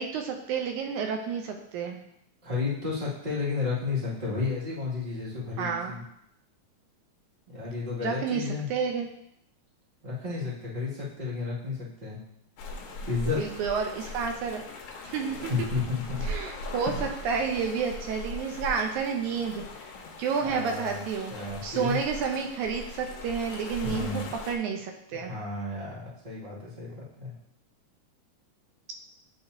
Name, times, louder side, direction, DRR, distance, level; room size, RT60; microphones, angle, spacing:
voice 1, 0.0-2.0 5.6-5.9 8.0-9.1 13.4-14.6 15.0-15.5 16.2-19.9 20.2-21.3 21.6-25.3, right 6 dB, 85° right, 3 dB, 2.0 m, -30 dB
voice 2, 2.4-6.0 7.5-8.7 10.0-12.2 13.1-13.4 15.5-16.3 20.4-21.0 21.3-22.0 23.8-24.3 25.3-27.3, left 4 dB, 20° right, -9 dB, 1.9 m, -32 dB
sound 1, 12.6-24.5, left 2 dB, 85° left, 2.3 m, -39 dB
10.5 x 3.8 x 2.7 m, 0.75 s
omnidirectional pair, 3.4 m